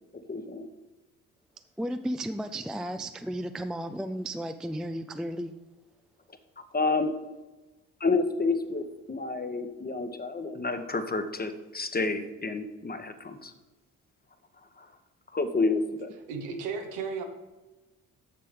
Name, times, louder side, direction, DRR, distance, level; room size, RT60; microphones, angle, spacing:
voice 1, 0.3-0.7 6.7-7.1 8.0-13.5 14.8-14.9 15.3-16.1, left 3 dB, 25° left, 8 dB, 1.0 m, -29 dB
voice 2, 1.8-5.5, right 1 dB, ahead, 9 dB, 0.4 m, -34 dB
voice 3, 16.3-17.2, right 5 dB, 75° right, 4 dB, 1.2 m, -34 dB
6.9 x 6.7 x 5.0 m, 1.2 s
hypercardioid pair, 40°, 39 cm